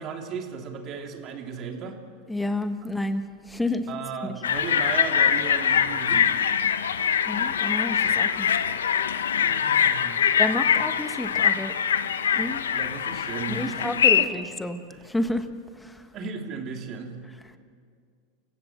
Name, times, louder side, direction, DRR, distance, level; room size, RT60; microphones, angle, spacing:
voice 1, 0.0-2.0 3.9-6.4 9.3-10.4 12.7-13.9 16.1-17.2, right 6 dB, 45° right, 3 dB, 3.0 m, -35 dB
voice 2, 2.3-3.9 4.3-4.4 7.3-8.5 10.4-11.7 12.3-12.7 13.5-16.1, left 1 dB, 5° left, 9 dB, 1.5 m, -30 dB
sound 1, 4.4-14.2, left 8 dB, 90° left, 1.0 m, -23 dB
29.0 x 16.5 x 7.4 m, 2.1 s
hypercardioid pair, 105°, 0 cm